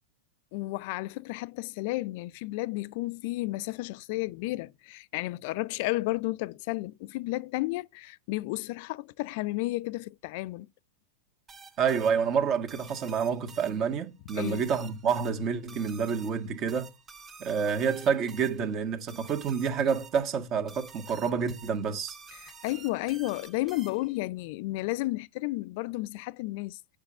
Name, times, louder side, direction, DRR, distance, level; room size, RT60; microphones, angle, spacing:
voice 1, 0.5-10.7 14.4-14.6 22.3-27.0, left 20 dB, 55° left, 0.4 m, -32 dB
sound 1, 11.5-24.2, right 5 dB, 20° right, 1.4 m, -51 dB
voice 2, 11.8-16.9 17.4-22.2, right 6 dB, 40° right, 1.6 m, -28 dB
8.0 x 5.1 x 6.7 m
hypercardioid pair, 100°, 0 cm